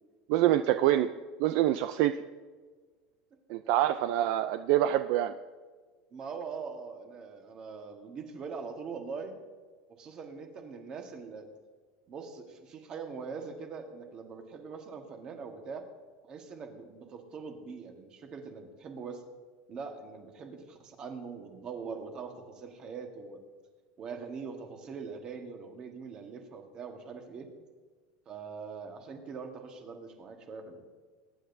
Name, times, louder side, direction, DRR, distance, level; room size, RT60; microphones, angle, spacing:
voice 1, 0.3-1.1 1.4-2.1 3.5-5.3, right 13 dB, 55° right, 10 dB, 0.4 m, -25 dB
voice 2, 6.1-9.4 10.0-11.5 12.1-15.8 16.2-19.2 19.7-23.4 24.0-27.5 28.3-30.8, right 5 dB, 30° right, 4 dB, 1.4 m, -42 dB
22.0 x 10.0 x 2.7 m, 1.4 s
cardioid pair, 170°, 3 cm